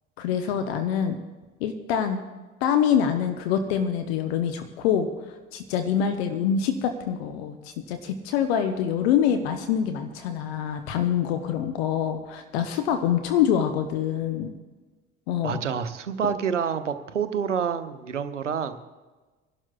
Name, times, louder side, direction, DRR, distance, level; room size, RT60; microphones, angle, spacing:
voice 1, 0.2-1.2 1.6-2.2 2.6-5.1 5.5-14.5 15.3-15.6, left 8 dB, 60° left, 7 dB, 0.9 m, -25 dB
voice 2, 15.4-18.8, right 7 dB, 80° right, 11 dB, 0.7 m, -28 dB
25.5 x 11.5 x 2.3 m, 1.3 s
figure-of-eight pair, 65°, 36 cm